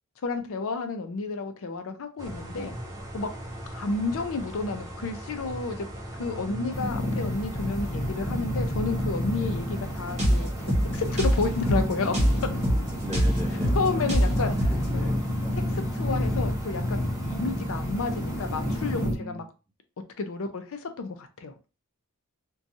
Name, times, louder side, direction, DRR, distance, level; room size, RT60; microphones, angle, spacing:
voice 1, 0.2-2.8 3.1-3.3 3.7-5.9 6.2-10.5 10.9-12.2 13.7-14.5 14.9-15.1 15.5-17.0 17.2-19.4 20.2-21.5, left 3 dB, 65° left, 7 dB, 0.5 m, -31 dB
sound 1, 2.2-19.1, right 1 dB, 15° right, 0.4 m, -39 dB
voice 2, 6.2-6.7 12.9-13.8 14.4-14.5 14.9-15.5 16.0-16.2 18.9-19.4, equal, 15° left, -6 dB, 1.1 m, -39 dB
sound 2, 6.7-19.1, left 1 dB, 30° left, 0.7 m, -30 dB
sound 3, 10.2-14.9, equal, 30° right, 1.2 m, -25 dB
2.6 x 2.2 x 2.6 m, 0.32 s
head